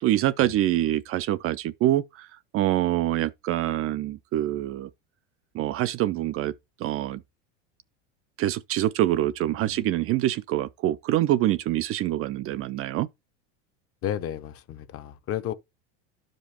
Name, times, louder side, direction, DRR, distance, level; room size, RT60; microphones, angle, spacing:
voice 1, 0.0-2.3 2.5-4.9 5.5-6.5 6.8-7.2 8.4-13.1, right 14 dB, 40° right, 0.4 m, -25 dB
voice 2, 9.7-10.0 14.0-15.5, left 11 dB, 40° left, 0.8 m, -33 dB
11.5 x 5.2 x 2.9 m
hypercardioid pair, 95°, 36 cm